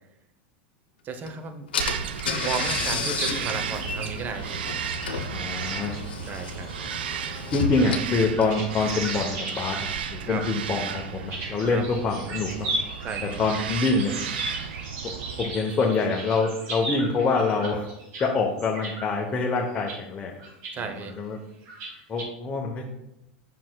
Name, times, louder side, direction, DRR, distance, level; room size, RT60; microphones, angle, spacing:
voice 1, 1.0-1.7 2.4-4.6 6.3-6.7 10.2-10.4 11.7-11.8 13.0-13.4 20.7-21.1, right 5 dB, 35° right, 8 dB, 0.8 m, -34 dB
Car / Engine, 1.3-1.4 1.7-9.2, left 5 dB, 85° left, 0.7 m, -33 dB
Bird vocalization bird call bird song, 1.8-15.5, right 8 dB, 80° right, 0.4 m, -34 dB
sound 1, 3.1-18.3 18.6-19.1 19.6-20.0 20.4-20.8 21.0-21.1 21.7-22.2, right 2 dB, 55° right, 2.3 m, -37 dB
voice 2, 5.3-5.9 7.5-12.7 13.4-14.1 14.4-14.5 15.4-17.9 18.2-20.3 20.8-21.4 22.1-22.8, left 3 dB, 25° left, -1 dB, 0.9 m, -25 dB
7.5 x 5.8 x 2.3 m, 0.87 s
hypercardioid pair, 100°, 5 cm